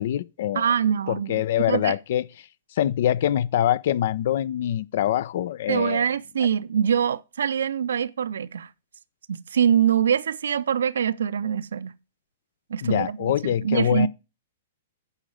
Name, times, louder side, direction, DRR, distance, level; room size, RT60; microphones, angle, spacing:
voice 1, 0.0-0.7 1.1-2.2 2.8-6.1 12.8-14.1, left 11 dB, 55° left, 0.5 m, -24 dB
voice 2, 0.5-1.4 1.7-2.0 5.7-8.7 9.3-11.9 12.7-14.1, right 8 dB, 65° right, 0.5 m, -24 dB
9.9 x 5.6 x 4.9 m
figure-of-eight pair, 110°, 0 cm